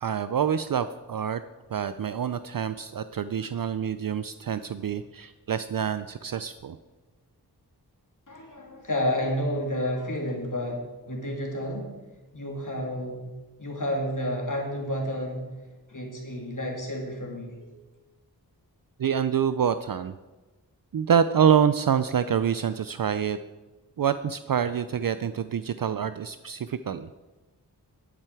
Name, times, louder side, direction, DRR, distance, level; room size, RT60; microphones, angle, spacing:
voice 1, 0.0-1.4 1.7-6.8 19.0-20.1 20.9-23.4 24.0-27.1, right 8 dB, 55° right, 12 dB, 0.5 m, -26 dB
voice 2, 8.3-11.9 12.3-13.3 13.6-15.5 15.9-17.8, left 1 dB, 50° left, 0 dB, 2.9 m, -30 dB
11.0 x 9.1 x 4.8 m, 1.2 s
wide cardioid pair, 45°, 40 cm